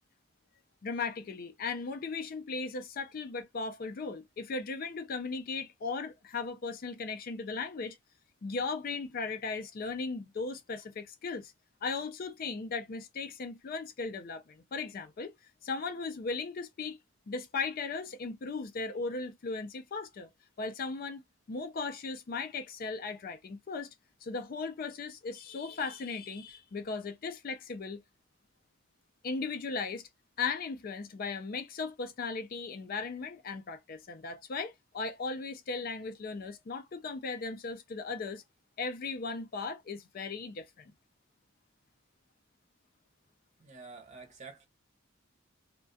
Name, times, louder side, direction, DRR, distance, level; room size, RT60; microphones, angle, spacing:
voice 1, 0.8-8.0 8.4-11.5 11.8-15.3 15.6-17.0 17.3-20.3 20.6-21.2 21.5-23.9 24.2-28.0 29.2-30.1 30.4-38.4 38.8-40.9, left 4 dB, 45° left, 0.4 m, -37 dB
voice 2, 43.6-44.7, right 4 dB, 35° right, 0.7 m, -48 dB
2.3 x 2.2 x 2.5 m
head